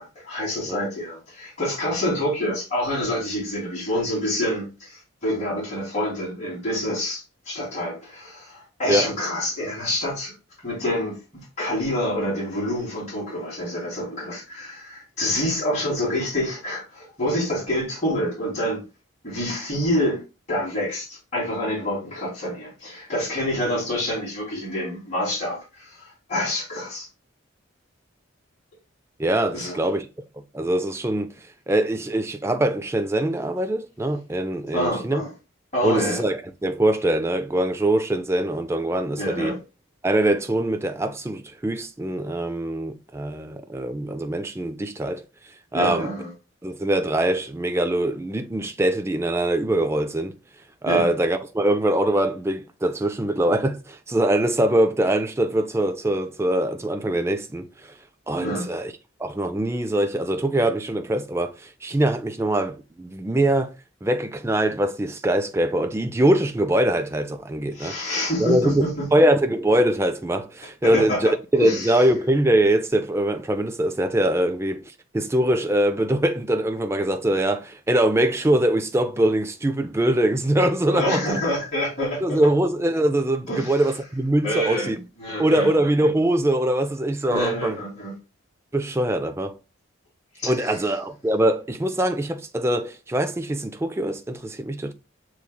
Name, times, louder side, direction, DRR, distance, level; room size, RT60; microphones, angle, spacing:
voice 1, 0.0-10.3 10.6-11.2 11.6-18.8 19.2-20.2 20.5-27.1 29.5-29.9 34.7-35.3 35.7-36.2 39.2-39.6 45.7-46.3 50.8-51.1 58.4-58.7 67.7-69.1 70.8-71.3 71.6-71.9 80.9-82.5 83.5-83.8 84.4-85.7 87.3-88.1 90.4-90.8, left 1 dB, 35° left, 2.6 m, -27 dB
voice 2, 29.2-30.1 30.5-31.3 31.7-35.2 35.8-39.6 40.0-45.2 45.7-46.1 46.6-50.4 50.8-57.9 58.3-58.9 59.2-63.7 64.0-68.0 68.4-68.8 69.1-74.8 75.1-81.4 82.2-85.0 85.4-87.8 88.7-89.6 90.4-94.9, right 1 dB, 10° right, 0.3 m, -23 dB
6.9 x 3.1 x 2.2 m
head